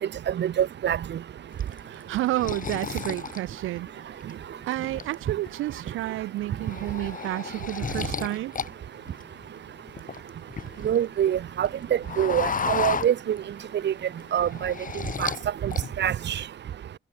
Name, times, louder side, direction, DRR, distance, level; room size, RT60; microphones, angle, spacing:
voice 1, 0.4-1.0 10.8-11.7 12.2-13.4 13.8-13.9 14.3-14.7 15.2-15.3 15.6-15.7 16.0-16.3, right 10 dB, 60° right, 2.1 m, -24 dB
sound 1, 1.6-4.3 4.8-5.5 5.9-6.1 6.4-8.7 9.0-11.0 11.4-13.7 14.0-15.4 15.7-16.3, left 6 dB, 45° left, 5.8 m, -33 dB
voice 2, 1.8-4.3 4.7-8.5, right 16 dB, 90° right, 1.7 m, -30 dB
cardioid pair, 90°, 20 cm